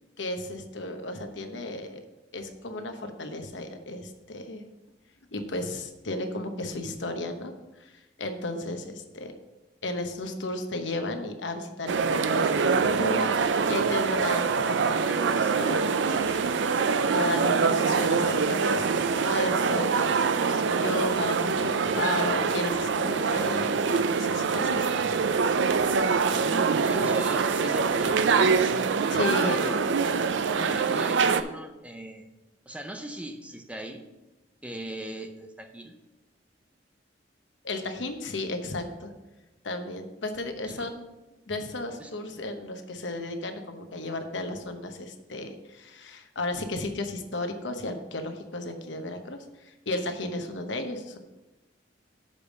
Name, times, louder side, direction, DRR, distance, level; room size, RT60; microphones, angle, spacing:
voice 1, 0.2-2.0 2.3-4.6 5.3-7.5 7.8-9.3 9.8-18.8 19.2-21.7 22.0-25.0 29.1-29.7 37.6-39.1 39.6-41.0 41.5-51.2, left 2 dB, 80° left, 6 dB, 1.0 m, -34 dB
sound 1, 11.9-31.4, right 5 dB, 75° right, 0.4 m, -24 dB
voice 2, 26.1-28.8 29.2-29.8 30.5-32.2 32.7-34.1 34.6-36.0 40.6-40.9 42.0-42.1, right 1 dB, 5° right, 5 dB, 0.6 m, -39 dB
6.7 x 5.2 x 6.4 m, 1.0 s
head